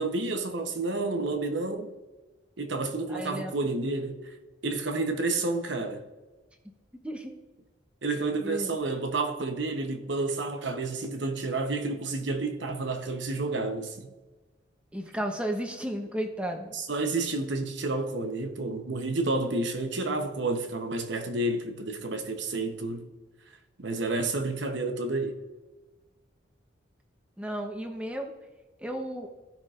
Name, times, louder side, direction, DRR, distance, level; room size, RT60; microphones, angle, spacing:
voice 1, 0.0-1.9 2.6-4.3 4.6-6.0 8.0-14.1 16.7-23.1 23.8-25.4, right 2 dB, 65° right, 1.0 m, -30 dB
voice 2, 3.1-3.6 7.0-7.3 8.4-8.8 14.9-16.7 27.4-28.3 28.8-29.3, right 1 dB, 5° right, 0.9 m, -33 dB
16.0 x 5.9 x 2.5 m
head